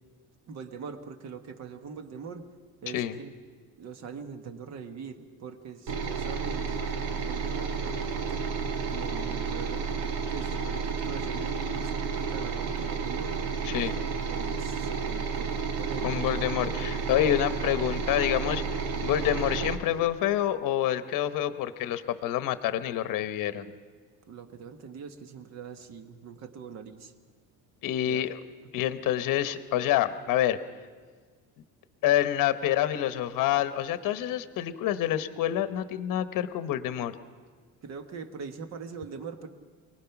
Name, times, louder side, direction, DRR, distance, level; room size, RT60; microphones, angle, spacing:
voice 1, 0.5-2.4 2.8-3.3 3.8-6.9 7.2-8.5 8.9-13.4 13.7-16.4 17.2-17.4 24.3-27.1 28.0-28.2 37.8-39.5, right 6 dB, 40° right, 8 dB, 1.5 m, -42 dB
sound 1, 5.9-19.8, right 5 dB, 75° right, 2.1 m, -31 dB
voice 2, 13.6-13.9 16.0-18.6 19.0-23.6 27.8-28.4 28.7-30.6 32.0-37.1, left 12 dB, 50° left, 11 dB, 1.0 m, -27 dB
27.5 x 19.5 x 5.9 m, 1.5 s
cardioid pair, 170°, 41 cm